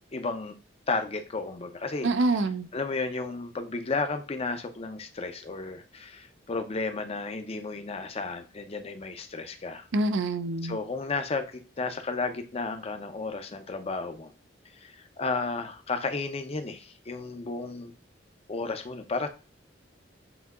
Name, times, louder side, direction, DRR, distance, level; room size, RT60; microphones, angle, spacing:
voice 1, 0.1-0.5 0.9-2.5 2.7-9.9 10.6-14.3 14.8-17.9 18.5-19.3, left 3 dB, 30° left, 8 dB, 0.6 m, -33 dB
voice 2, 2.0-2.7 9.9-10.8, right 2 dB, 70° right, 11 dB, 0.5 m, -26 dB
7.8 x 2.8 x 2.3 m, 0.33 s
head